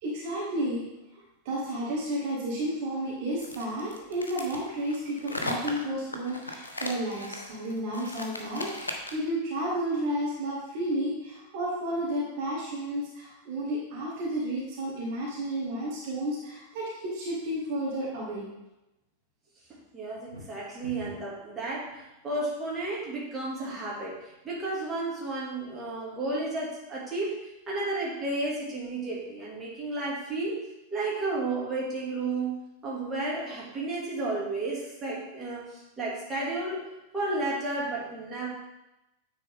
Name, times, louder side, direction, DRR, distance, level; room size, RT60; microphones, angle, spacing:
voice 1, 0.0-0.8 1.5-18.5, right 1 dB, 45° right, -4 dB, 2.0 m, -32 dB
sound 1, 3.4-9.3, left 2 dB, 75° left, 0.9 m, -37 dB
voice 2, 19.7-30.6 30.9-32.6 32.8-36.8 37.1-38.5, right 2 dB, 20° right, -5 dB, 2.3 m, -32 dB
sound 2, 20.1-21.4, left 1 dB, 85° right, 1.8 m, -44 dB
9.3 x 4.1 x 3.7 m, 0.95 s
figure-of-eight pair, 90°, 0 cm